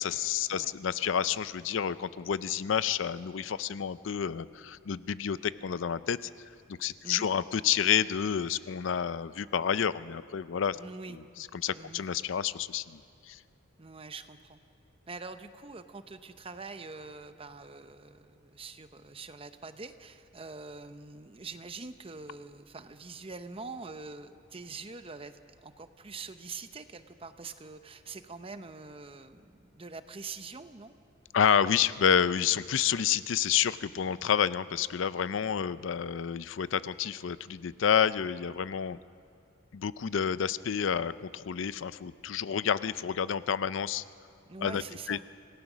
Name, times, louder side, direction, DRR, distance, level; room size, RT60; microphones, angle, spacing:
voice 1, 0.0-6.3 6.7-10.8 11.6-13.0 13.3-13.4 31.3-39.0 39.7-44.0 44.6-44.8 45.1-45.2, left 8 dB, 70° left, 16 dB, 0.4 m, -29 dB
voice 2, 10.7-11.2 11.7-12.0 13.8-14.6 15.1-30.9 44.5-45.2, right 4 dB, 30° right, 10 dB, 0.7 m, -44 dB
27.0 x 17.0 x 6.2 m, 2.5 s
head